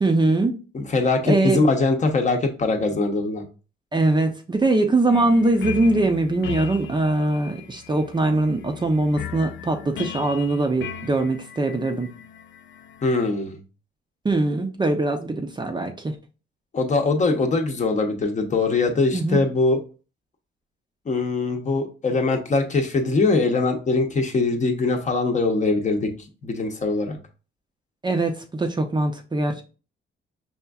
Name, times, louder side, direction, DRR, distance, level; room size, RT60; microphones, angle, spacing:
voice 1, 0.0-0.6 1.2-1.6 3.9-12.1 14.2-16.1 19.1-19.4 28.0-29.6, right 2 dB, 20° right, 0.6 m, -22 dB
voice 2, 0.7-3.5 13.0-13.6 16.7-19.8 21.1-26.1 26.4-27.2, left 3 dB, 35° left, 0.8 m, -22 dB
sound 1, 5.1-13.3, left 10 dB, 70° left, 0.4 m, -37 dB
5.6 x 2.5 x 2.3 m
cardioid pair, 90°, 20 cm